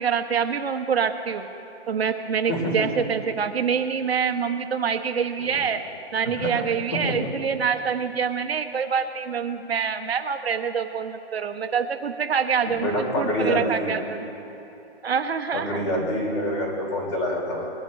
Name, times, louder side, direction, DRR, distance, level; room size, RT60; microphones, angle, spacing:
voice 1, 0.0-1.5 1.9-5.8 6.1-12.9 13.2-14.3 15.0-15.8, right 6 dB, 65° right, 7 dB, 1.0 m, -26 dB
voice 2, 2.5-2.9 5.4-5.6 6.4-6.5 6.9-7.0 12.6-13.9 15.5-17.7, equal, 30° left, -2 dB, 2.9 m, -26 dB
21.5 x 11.0 x 3.1 m, 3.0 s
hypercardioid pair, 180°, 33 cm